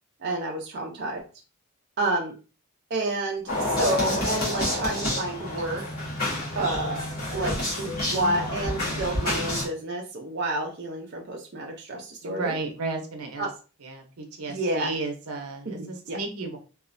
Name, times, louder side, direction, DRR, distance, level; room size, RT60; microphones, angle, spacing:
voice 1, 0.2-1.2 2.0-2.3 2.9-5.8 6.6-7.0 7.3-12.5 13.4-13.5 14.5-14.9 15.7-16.2, right 2 dB, 45° right, -1 dB, 0.5 m, -29 dB
sound 1, 3.5-9.6, left 1 dB, 45° left, 1.3 m, -28 dB
voice 2, 12.2-13.5 13.8-16.6, right 3 dB, 85° right, 3 dB, 0.7 m, -33 dB
3.0 x 2.4 x 2.5 m, 0.34 s
head